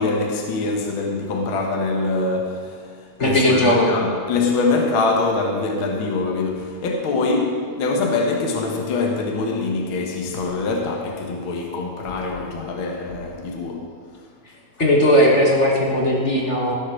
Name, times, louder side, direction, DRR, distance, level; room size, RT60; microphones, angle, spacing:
voice 1, 0.0-2.8 3.2-13.9, left 3 dB, 55° left, 0 dB, 1.8 m, -24 dB
voice 2, 3.2-3.9 14.8-16.7, left 1 dB, 35° left, -2 dB, 1.2 m, -17 dB
15.5 x 7.3 x 6.4 m, 2.1 s
omnidirectional pair, 3.4 m